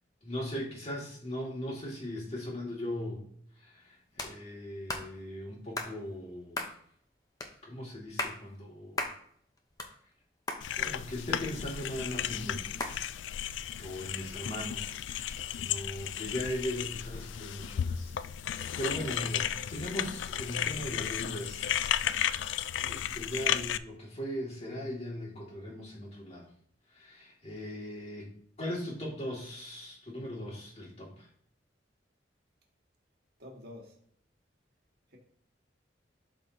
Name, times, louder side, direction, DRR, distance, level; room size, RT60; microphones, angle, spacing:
voice 1, 0.2-3.2 3.6-6.7 7.6-9.1 10.8-12.7 13.8-18.1 18.4-21.7 22.1-26.5 26.9-28.3 28.6-31.3, left 1 dB, 35° left, -3 dB, 2.2 m, -39 dB
sound 1, 4.2-4.3 4.9-5.1 5.8-5.9 6.5-6.8 7.4-7.5 8.0-8.4 9.0-9.2 9.6-10.2 10.5-10.6 11.3-11.9 12.8-13.0, left 2 dB, 20° left, 0.8 m, -35 dB
sound 2, 10.6-23.8, left 10 dB, 80° left, 0.3 m, -34 dB
voice 2, 33.4-34.0 35.1-35.2, left 1 dB, 60° right, 0 dB, 1.7 m, -48 dB
12.0 x 4.2 x 2.8 m, 0.62 s
head